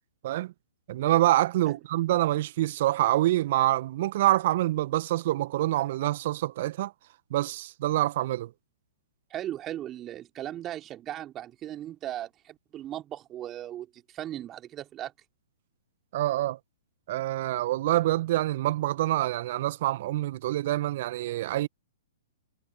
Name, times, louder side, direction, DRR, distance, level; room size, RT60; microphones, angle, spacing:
voice 1, 0.9-6.9 7.3-8.5 16.1-16.6 17.1-21.7, right 15 dB, 50° right, 1.3 m, -26 dB
voice 2, 9.3-15.1, right 12 dB, 25° right, 3.2 m, -37 dB
figure-of-eight pair, 115°, 0 cm